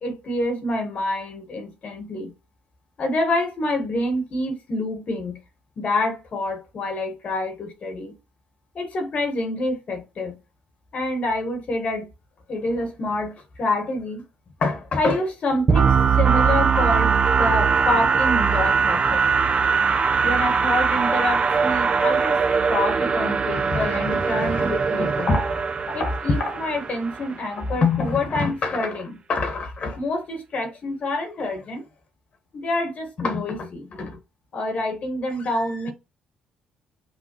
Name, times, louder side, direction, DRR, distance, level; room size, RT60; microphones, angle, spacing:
voice 1, 0.0-2.3 3.0-5.4 5.8-8.1 8.7-10.4 10.9-12.1 12.5-14.2 14.6-19.2 20.2-22.4 22.7-31.8 32.5-34.2 34.5-35.9, left 2 dB, 45° left, 1.1 m, -26 dB
sound 1, 15.7-27.4, right 5 dB, 35° right, 0.5 m, -21 dB
5.9 x 2.1 x 2.9 m
figure-of-eight pair, 45°, 3 cm